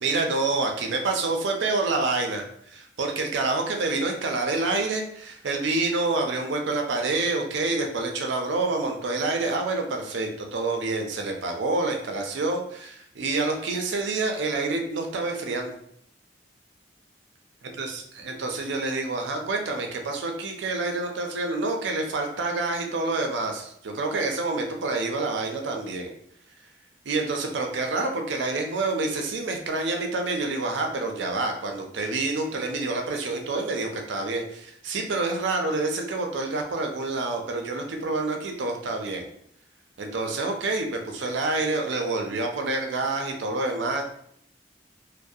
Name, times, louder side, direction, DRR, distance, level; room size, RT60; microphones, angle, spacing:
voice 1, 0.0-15.7 17.8-26.1 27.1-39.3 40.0-44.0, right 3 dB, 90° right, 3 dB, 0.4 m, -27 dB
2.6 x 2.0 x 2.3 m, 0.68 s
head